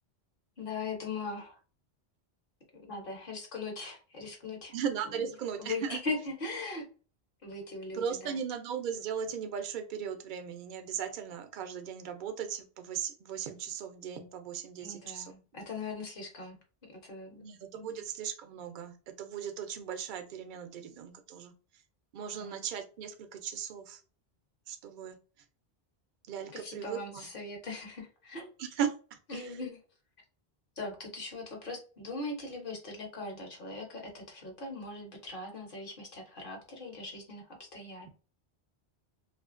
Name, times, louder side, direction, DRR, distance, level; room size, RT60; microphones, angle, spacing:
voice 1, 0.6-1.6 2.9-4.8 5.0-5.3 5.6-6.8 7.4-8.4 14.8-16.6 17.0-17.4 17.8-18.0 22.4-22.6 26.5-28.5 29.3-29.8 30.8-37.4 37.7-38.1, left 3 dB, 60° left, 2 dB, 1.0 m, -40 dB
voice 2, 4.7-6.0 7.9-15.3 17.4-21.5 22.1-24.0 24.7-25.2 26.3-27.3 28.6-28.9, right 8 dB, 60° right, 7 dB, 0.6 m, -37 dB
2.7 x 2.4 x 2.4 m, 0.37 s
omnidirectional pair, 1.1 m